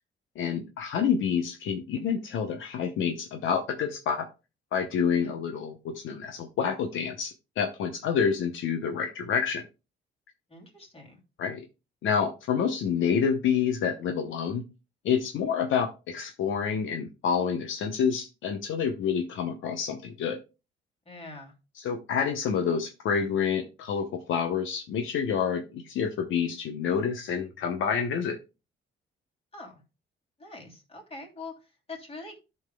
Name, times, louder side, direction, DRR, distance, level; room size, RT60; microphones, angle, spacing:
voice 1, 0.4-4.3 4.7-9.6 11.4-11.6 12.0-14.6 15.0-20.4 21.8-28.4, left 7 dB, 75° left, 6 dB, 0.9 m, -28 dB
voice 2, 10.5-11.2 21.0-21.5 29.5-29.8 30.4-32.4, left 3 dB, 30° left, 0 dB, 2.9 m, -44 dB
14.0 x 5.6 x 2.2 m, 0.29 s
cardioid pair, 90°, 20 cm